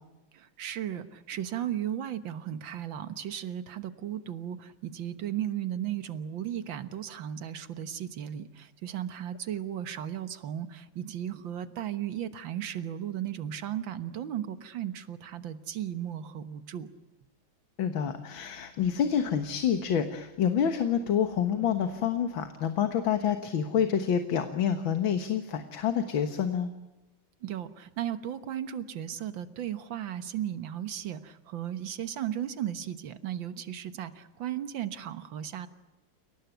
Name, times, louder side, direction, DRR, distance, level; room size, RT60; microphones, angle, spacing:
voice 1, 0.3-16.9 27.4-35.7, right 10 dB, 80° right, 11 dB, 2.0 m, -35 dB
voice 2, 17.8-26.7, left 8 dB, 85° left, 8 dB, 2.2 m, -28 dB
30.0 x 18.0 x 9.2 m, 1.0 s
omnidirectional pair, 2.1 m